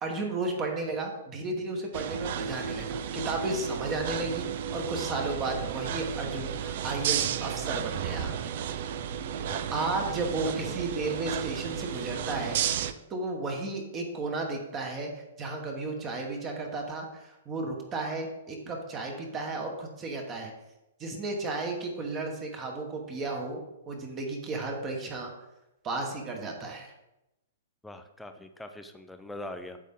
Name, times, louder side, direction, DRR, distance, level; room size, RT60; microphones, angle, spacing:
voice 1, 0.0-8.3 9.7-12.6 13.1-15.1 15.4-20.5 21.0-25.3 25.8-26.9, right 3 dB, 15° right, 2 dB, 1.2 m, -33 dB
sound 1, 1.9-12.9, right 8 dB, 45° right, 0.5 m, -33 dB
voice 2, 10.4-10.8 27.8-29.8, left 1 dB, 5° left, 7 dB, 0.5 m, -42 dB
8.4 x 7.2 x 3.7 m, 0.93 s
hypercardioid pair, 165°, 0 cm